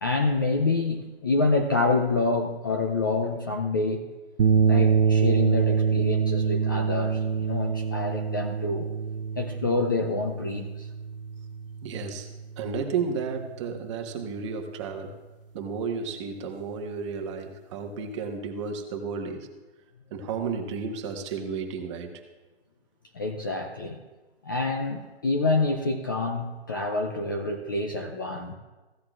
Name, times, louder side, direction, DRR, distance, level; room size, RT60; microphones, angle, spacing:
voice 1, 0.0-4.0 4.7-8.9 9.4-10.9 23.1-24.0 24.4-28.5, left 3 dB, 20° left, 3 dB, 0.4 m, -27 dB
sound 1, 4.4-12.9, right 5 dB, 60° right, 0.6 m, -25 dB
voice 2, 11.8-12.3 12.6-15.2 15.5-19.5 20.1-22.1, right 5 dB, 30° right, 4 dB, 1.1 m, -32 dB
15.5 x 10.0 x 2.4 m, 1.2 s
hypercardioid pair, 160°, 31 cm